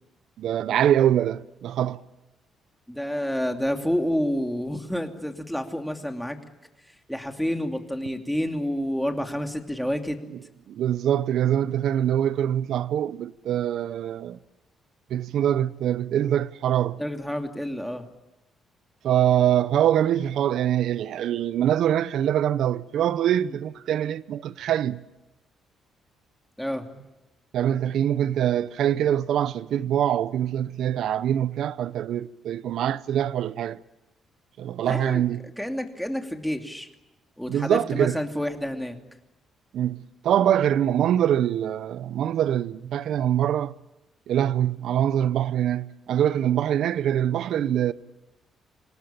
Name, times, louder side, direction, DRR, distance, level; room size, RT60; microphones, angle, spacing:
voice 1, 0.4-2.0 10.7-14.4 15.1-17.0 19.0-25.0 27.5-33.8 34.6-35.5 37.5-38.2 39.7-43.7 44.3-47.9, right 10 dB, 75° right, 0.8 m, -24 dB
voice 2, 2.9-6.4 7.1-10.2 17.0-18.1 23.5-23.6 26.6-26.9 34.8-35.2 35.6-36.9 37.4-39.0, equal, 5° left, 2.8 m, -29 dB
26.5 x 18.5 x 8.8 m
cardioid pair, 90°, 0 cm